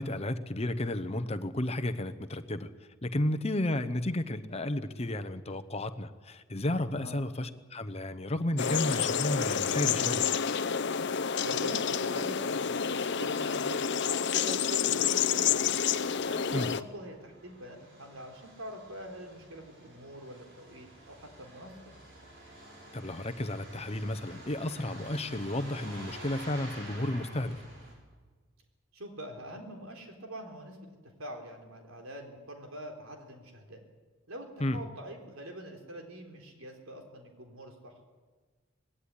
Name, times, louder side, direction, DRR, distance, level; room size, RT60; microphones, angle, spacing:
voice 1, 0.0-2.7 3.0-10.2 16.5-16.7 22.9-27.6 34.6-34.8, left 1 dB, 30° left, 10 dB, 0.9 m, -32 dB
sound 1, 8.6-16.8, left 7 dB, 60° left, 0.7 m, -29 dB
voice 2, 11.3-15.7 16.2-21.9 28.9-33.8 34.3-37.9, equal, 90° right, 3 dB, 3.9 m, -44 dB
Truck, 15.1-28.0, right 1 dB, 60° right, 6.4 m, -50 dB
19.5 x 17.0 x 9.9 m, 1.4 s
head